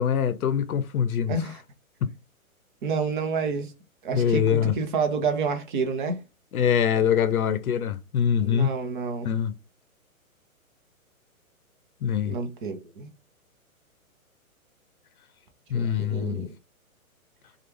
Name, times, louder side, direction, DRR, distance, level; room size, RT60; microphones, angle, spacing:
voice 1, 0.0-1.4 2.0-2.1 4.1-4.7 6.5-8.7 9.2-9.5 12.0-12.4 15.7-16.5, left 8 dB, 85° left, 0.6 m, -24 dB
voice 2, 1.3-1.6 2.8-3.7 4.0-6.2 8.4-9.3 12.3-13.1 15.7-16.5, right 4 dB, 35° right, 0.7 m, -29 dB
3.2 x 2.4 x 2.9 m
hypercardioid pair, 140°, 43 cm